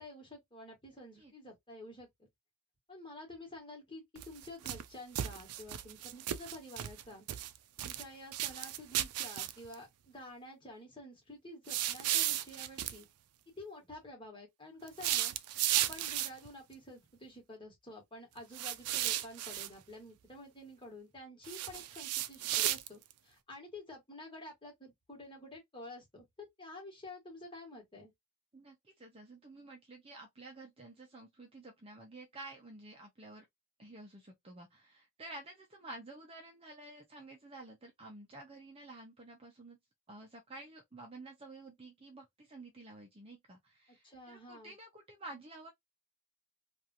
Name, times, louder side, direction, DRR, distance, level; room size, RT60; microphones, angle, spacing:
voice 1, 0.0-2.1 2.9-7.3 7.8-13.1 13.6-15.3 15.7-28.1 44.0-44.7, left 1 dB, 20° left, 1.4 m, -50 dB
sound 1, 4.2-4.8 5.1-7.0 7.3-8.0 8.3-9.7 11.7-13.0 14.9-16.5 18.5-19.7 21.4-23.1, right 13 dB, 90° right, 0.4 m, -34 dB
voice 2, 28.5-33.4 33.8-39.8 40.1-45.7, right 2 dB, 25° right, 0.6 m, -51 dB
2.9 x 2.4 x 2.5 m
head